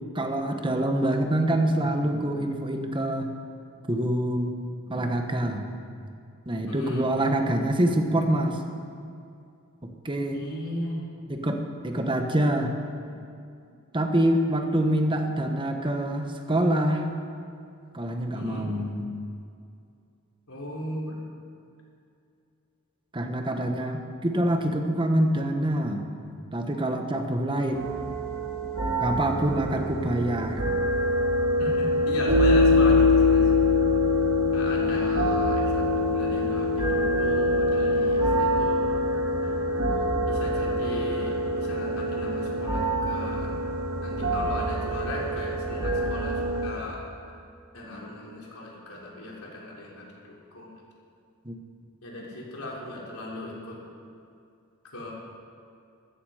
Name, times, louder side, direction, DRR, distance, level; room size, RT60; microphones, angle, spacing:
voice 1, 0.1-3.3 3.9-4.5 4.9-5.7 6.5-8.6 9.8-10.4 11.3-12.7 13.9-17.1 17.9-19.0 23.1-26.0 26.5-27.9 29.0-30.6 51.4-51.5, right 1 dB, 20° right, 4 dB, 1.2 m, -26 dB
voice 2, 6.7-7.1 10.3-11.0 13.1-13.2 18.3-18.7 20.5-21.2 31.6-33.5 34.5-38.8 39.4-39.6 40.3-43.5 44.0-47.0 47.7-50.7 52.0-53.8 54.8-55.1, left 1 dB, 80° left, -3 dB, 3.5 m, -37 dB
sound 1, 27.7-46.7, left 1 dB, 80° right, 3.1 m, -24 dB
15.0 x 14.0 x 5.0 m, 2.5 s
head